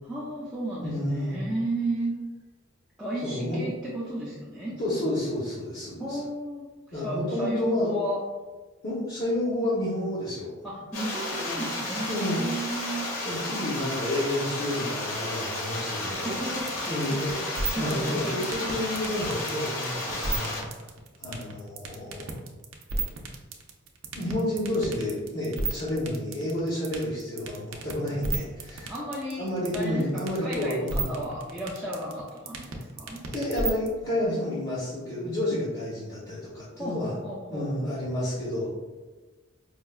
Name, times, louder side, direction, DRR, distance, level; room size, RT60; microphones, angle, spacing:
voice 1, 0.0-2.2 3.0-4.8 6.0-8.2 10.6-13.1 16.0-18.3 28.9-29.5 29.7-33.2 35.9-36.0 36.8-37.7, right 1 dB, ahead, -10 dB, 0.4 m, -34 dB
voice 2, 0.8-1.4 3.2-3.6 4.8-6.2 6.9-7.9 8.8-10.5 11.5-11.6 12.1-12.4 13.2-16.3 16.9-17.4 17.7-20.5 21.2-22.3 24.1-28.9 29.4-31.1 33.3-37.1 37.5-38.8, left 1 dB, 55° left, -12 dB, 0.9 m, -30 dB
sound 1, 10.9-20.6, left 1 dB, 90° left, 1.0 m, -33 dB
sound 2, 16.6-33.9, right 3 dB, 70° right, 0.5 m, -32 dB
4.7 x 2.2 x 2.3 m, 1.3 s
head